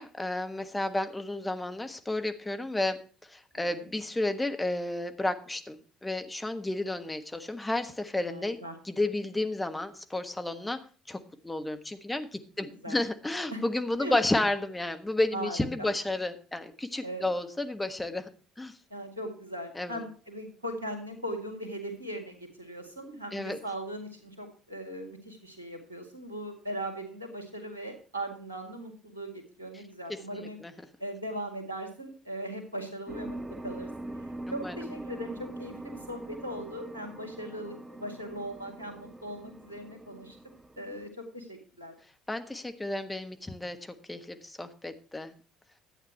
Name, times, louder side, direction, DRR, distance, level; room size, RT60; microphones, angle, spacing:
voice 1, 0.0-8.6 8.8-10.8 11.1-18.3 18.6-18.8 19.7-20.0 23.3-23.6 30.3-30.7 34.5-34.7 42.3-45.3, left 2 dB, 15° left, 7 dB, 1.4 m, -32 dB
voice 2, 3.5-3.8 8.2-8.8 12.6-13.0 13.5-13.6 14.0-14.2 15.3-15.9 17.0-17.3 18.9-30.6 31.0-33.9 34.5-40.4 40.8-41.9, right 1 dB, 90° right, 4 dB, 2.0 m, -39 dB
sound 1, 33.1-41.1, right 1 dB, 15° right, 1.1 m, -42 dB
11.5 x 9.0 x 4.4 m, 0.38 s
figure-of-eight pair, 55°, 0 cm